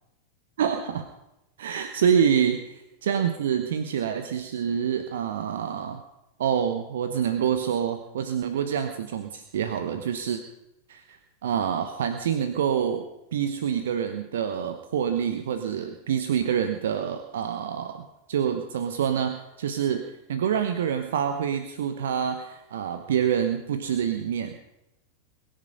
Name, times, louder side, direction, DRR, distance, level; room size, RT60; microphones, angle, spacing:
voice 1, 0.6-1.1 1.6-6.0 6.4-10.4 10.9-11.2 11.4-24.6, right 8 dB, 60° right, 8 dB, 1.1 m, -27 dB
22.0 x 10.5 x 5.5 m, 0.93 s
figure-of-eight pair, 90°, 0 cm